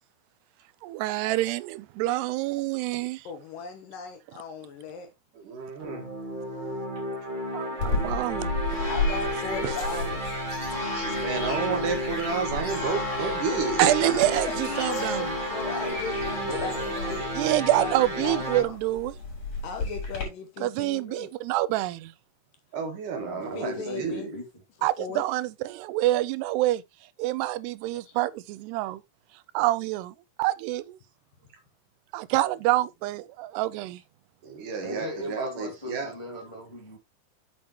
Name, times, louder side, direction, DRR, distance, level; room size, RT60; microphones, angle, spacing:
voice 1, 0.8-3.2 7.5-8.5 9.6-9.8 11.0-11.2 13.2-13.4 13.8-15.2 17.4-19.2 20.6-22.1 24.8-26.8 27.2-29.0 29.5-30.1 30.4-31.0 32.1-34.0, right 16 dB, 85° right, 2.7 m, -27 dB
voice 2, 3.3-5.1 8.9-10.2 14.0-18.8 19.6-21.3 23.6-24.3 25.0-25.2 28.0-28.2, left 4 dB, 70° left, 2.3 m, -37 dB
voice 3, 5.4-6.0 7.9-8.0 11.0-14.1 22.7-24.3 34.4-36.1, right 5 dB, 60° right, 2.8 m, -31 dB
sound 1, 5.8-18.6, equal, 40° right, 0.7 m, -32 dB
sound 2, 7.8-20.2, left 3 dB, 40° left, 5.1 m, -33 dB
voice 4, 13.6-13.9 15.8-17.6 23.2-24.6 34.8-37.0, left 1 dB, 10° left, 1.6 m, -38 dB
8.5 x 8.0 x 2.9 m
omnidirectional pair, 4.7 m